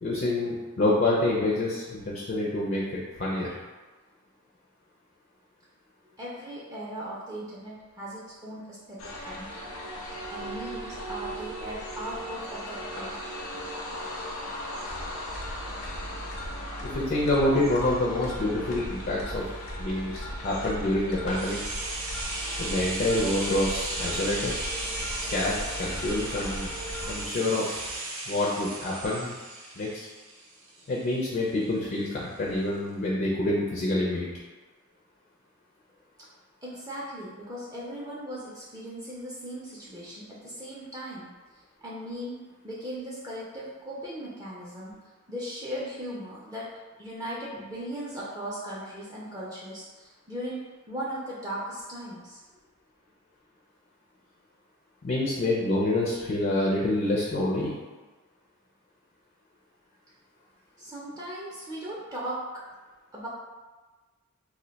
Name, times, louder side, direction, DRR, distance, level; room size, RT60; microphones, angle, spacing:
voice 1, 0.0-3.5 16.8-19.5 19.8-21.6 22.6-24.6 25.3-26.8 27.0-27.8 28.3-29.3 29.8-30.1 30.9-34.3 55.0-57.7, left 1 dB, 40° left, -4 dB, 0.4 m, -27 dB
voice 2, 6.0-9.5 10.3-13.2 36.6-41.3 41.8-42.4 42.6-45.0 45.3-46.7 47.0-50.6 50.9-52.4 60.8-62.4 63.1-63.3, equal, 15° right, -6 dB, 0.4 m, -38 dB
sound 1, 9.0-27.3, equal, 85° left, 0.6 m, -37 dB
sound 2, 21.3-31.1 31.4-31.5, right 2 dB, 70° right, 0.6 m, -36 dB
2.5 x 2.1 x 3.9 m, 1.3 s
head